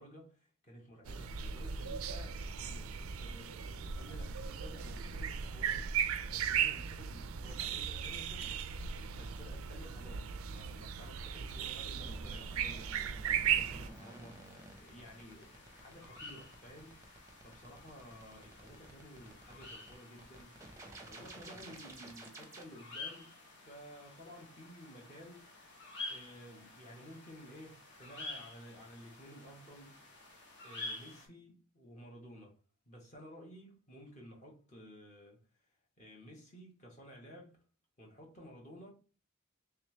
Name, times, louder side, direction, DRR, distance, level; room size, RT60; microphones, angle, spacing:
voice 1, 0.0-8.7 9.0-20.6 21.1-25.5 25.8-30.0 30.6-32.6 32.8-37.6 38.0-38.9, equal, 35° left, 1.2 m, -54 dB
sound 1, 1.1-13.9, right 7 dB, 85° right, 0.4 m, -37 dB
sound 2, 11.9-22.6, right 2 dB, 15° right, 0.6 m, -52 dB
sound 3, 13.3-31.3, left 3 dB, 55° left, 1.1 m, -50 dB
3.4 x 3.2 x 3.1 m
head